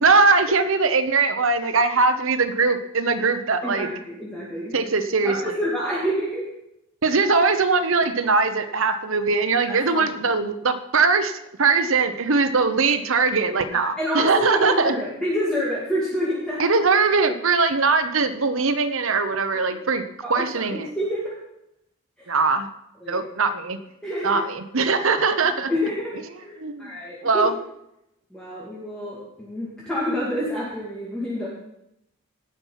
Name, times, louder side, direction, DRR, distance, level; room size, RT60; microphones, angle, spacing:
voice 1, 0.0-3.9 4.7-5.6 7.0-15.0 16.6-20.0 20.3-20.9 22.3-22.7 23.1-23.8 24.2-25.7 26.6-26.9 27.2-27.5, right 4 dB, 65° right, 9 dB, 0.9 m, -21 dB
voice 2, 3.6-4.7 5.2-6.4 9.7-10.1 14.0-16.7 20.2-21.3 22.2-22.3 23.0-23.2 24.0-24.4 25.7-26.1 26.4-27.5 28.3-31.5, equal, 5° left, -8 dB, 2.3 m, -28 dB
17.5 x 5.8 x 5.6 m, 0.82 s
head